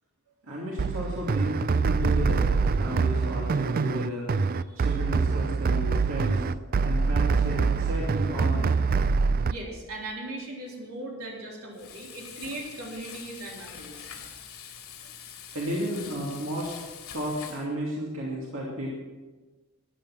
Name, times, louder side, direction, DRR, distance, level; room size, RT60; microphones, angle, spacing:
voice 1, 0.4-4.3 4.8-6.4 6.8-8.9 15.5-19.0, equal, 65° right, -4 dB, 2.7 m, -33 dB
sound 1, 0.8-9.5, right 4 dB, 40° right, 0.4 m, -25 dB
voice 2, 9.4-14.1, right 2 dB, 80° right, -2 dB, 3.6 m, -39 dB
Frying (food), 11.7-17.7, left 8 dB, 90° left, 2.6 m, -44 dB
14.0 x 10.5 x 6.1 m, 1.2 s
head